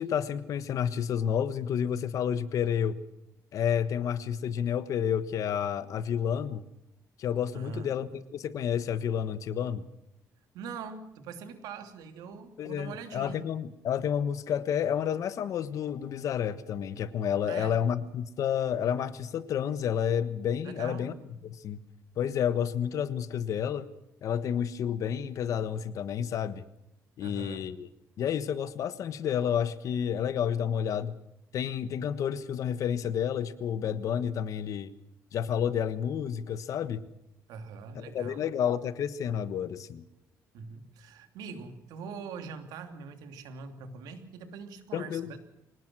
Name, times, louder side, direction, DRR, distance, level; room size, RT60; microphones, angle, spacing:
voice 1, 0.0-3.0 3.5-6.6 7.2-9.8 12.6-21.1 21.6-21.8 22.2-23.9 24.2-26.6 27.2-27.9 28.2-31.2 31.5-34.9 35.3-37.1 37.9-40.0 44.9-45.3, left 8 dB, 55° left, 13 dB, 1.3 m, -30 dB
voice 2, 7.5-8.0 10.5-13.5 17.4-17.8 20.6-21.1 27.2-27.6 37.5-38.5 40.5-45.4, right 5 dB, 90° right, 7 dB, 2.9 m, -42 dB
25.0 x 19.0 x 6.2 m, 0.84 s
cardioid pair, 135°, 7 cm